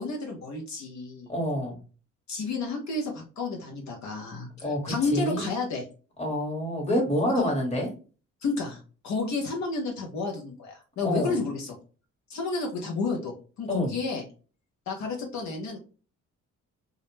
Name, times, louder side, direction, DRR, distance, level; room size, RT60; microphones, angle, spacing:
voice 1, 0.0-1.3 2.3-5.8 7.3-7.5 8.4-11.7 12.3-14.2 14.9-15.8, left 3 dB, 65° left, 0 dB, 0.8 m, -31 dB
voice 2, 1.3-1.8 4.6-5.5 6.2-7.9 11.0-11.3 13.7-13.9, equal, 20° left, 0 dB, 1.2 m, -27 dB
2.4 x 2.1 x 3.0 m, 0.36 s
cardioid pair, 90°, 30 cm